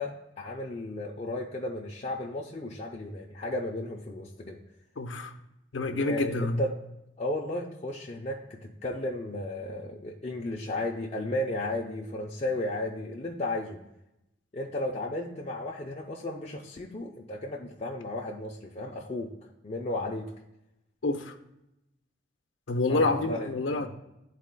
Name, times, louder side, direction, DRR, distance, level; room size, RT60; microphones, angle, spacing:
voice 1, 0.0-4.6 6.0-6.7 7.2-13.8 14.5-19.3 19.6-20.3 22.9-23.5 23.8-23.9, left 1 dB, 35° left, -2 dB, 0.5 m, -34 dB
voice 2, 5.0-5.3 5.7-6.6 21.0-21.3 22.7-23.9, left 2 dB, 85° left, 6 dB, 0.7 m, -27 dB
12.0 x 4.1 x 2.2 m, 0.88 s
head